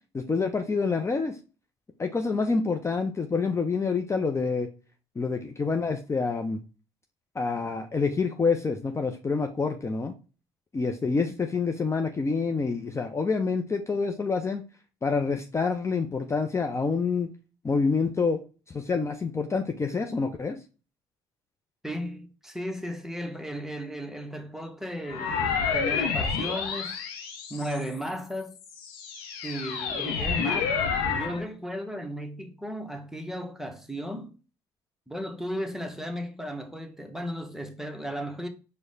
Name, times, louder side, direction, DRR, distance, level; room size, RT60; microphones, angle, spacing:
voice 1, 0.1-1.4 2.0-4.7 5.2-6.6 7.4-10.1 10.7-14.6 15.0-17.3 17.6-18.4 18.7-20.6, left 4 dB, 20° left, 0.5 m, -27 dB
voice 2, 21.8-26.9 27.5-28.6 29.4-30.7 31.1-34.3 35.1-38.5, equal, 5° right, 0.9 m, -35 dB
sound 1, 25.1-28.0 28.6-31.4, left 6 dB, 80° left, 0.7 m, -29 dB
4.7 x 2.2 x 4.0 m
hypercardioid pair, 60°, 12 cm